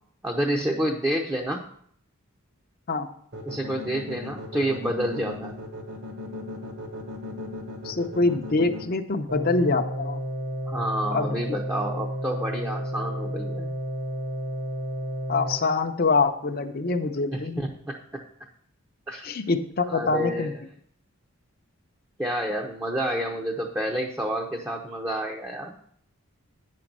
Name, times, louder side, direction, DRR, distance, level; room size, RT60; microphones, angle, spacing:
voice 1, 0.2-1.6 3.5-5.6 10.7-13.7 17.3-18.0 19.1-19.3 19.9-20.5 22.2-25.7, right 1 dB, 10° right, 1 dB, 0.6 m, -29 dB
sound 1, 3.3-8.8, left 1 dB, 55° right, 1.3 m, -37 dB
voice 2, 7.8-10.2 11.1-11.4 15.3-17.6 19.2-20.5, left 3 dB, 45° left, 6 dB, 0.6 m, -25 dB
sound 2, 9.3-15.6, equal, 75° right, 1.3 m, -31 dB
9.3 x 5.3 x 6.0 m, 0.64 s
head